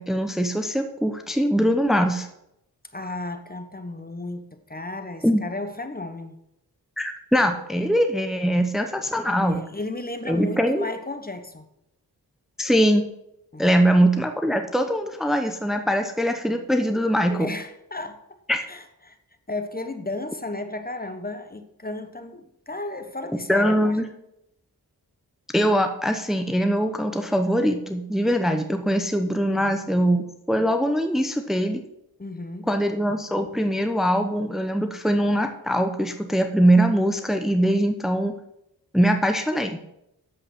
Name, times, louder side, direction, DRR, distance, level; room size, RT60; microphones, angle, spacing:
voice 1, 0.0-2.3 5.2-5.4 7.0-9.6 10.3-10.9 12.6-13.1 13.6-17.5 18.5-18.6 23.5-24.0 25.5-31.8 32.7-38.4 38.9-39.8, equal, ahead, 6 dB, 0.9 m, -22 dB
voice 2, 2.9-6.4 9.4-11.6 13.5-13.9 17.2-18.4 18.7-19.2 19.5-24.0 29.5-30.0 32.2-32.7, left 2 dB, 25° left, 8 dB, 1.1 m, -34 dB
8.8 x 7.7 x 6.0 m, 0.81 s
cardioid pair, 60°, 38 cm